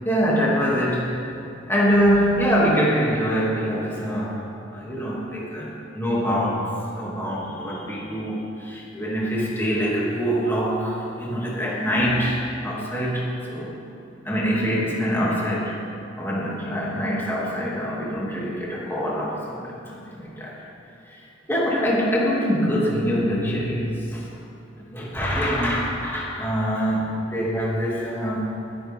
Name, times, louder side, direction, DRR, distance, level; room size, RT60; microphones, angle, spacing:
voice 1, 0.0-1.1 1.7-4.4 4.7-13.7 14.2-15.7 16.2-20.5 21.1-21.2 21.5-24.3 24.9-28.5, equal, 10° left, -6 dB, 2.7 m, -24 dB
21.0 x 9.3 x 3.7 m, 2.8 s
head